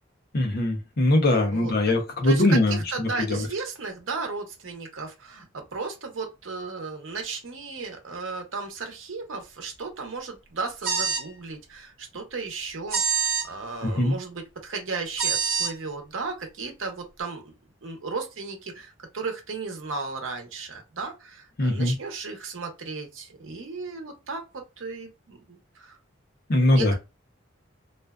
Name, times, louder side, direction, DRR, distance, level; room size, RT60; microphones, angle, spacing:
voice 1, 0.3-3.5 13.8-14.1 21.6-21.9 26.5-26.9, left 1 dB, 50° left, 0.6 m, -22 dB
voice 2, 1.5-2.0 2.2-17.5 17.8-26.0 26.5-26.9, right 4 dB, 85° right, 0.7 m, -35 dB
sound 1, 10.8-11.3 12.9-13.5 15.2-15.7, right 6 dB, 50° right, 1.0 m, -25 dB
2.4 x 2.3 x 2.2 m
head